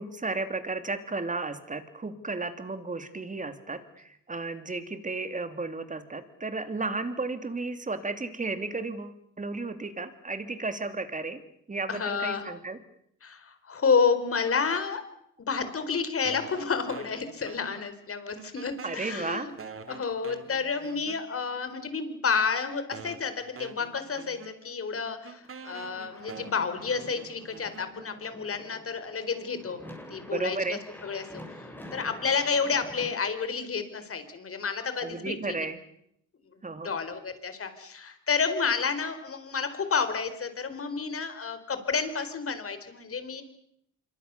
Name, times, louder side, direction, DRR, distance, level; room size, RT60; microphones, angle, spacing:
voice 1, 0.0-11.4 11.7-12.8 18.8-19.5 28.0-28.2 30.3-30.8 35.0-35.8 36.6-36.9, right 3 dB, 25° right, 9 dB, 3.0 m, -33 dB
voice 2, 11.9-12.5 13.2-15.0 15.4-19.5 19.9-29.8 30.1-31.3 31.5-35.7 36.8-43.4, left 5 dB, 45° left, 10 dB, 4.2 m, -30 dB
sound 1, 16.2-18.1 18.4-21.6 22.3-22.4 22.9-28.3, right 5 dB, 45° right, 2.5 m, -46 dB
sound 2, 25.4-33.1, left 1 dB, 5° left, 7.9 m, -47 dB
26.0 x 23.5 x 7.0 m, 0.74 s
cardioid pair, 85°, 32 cm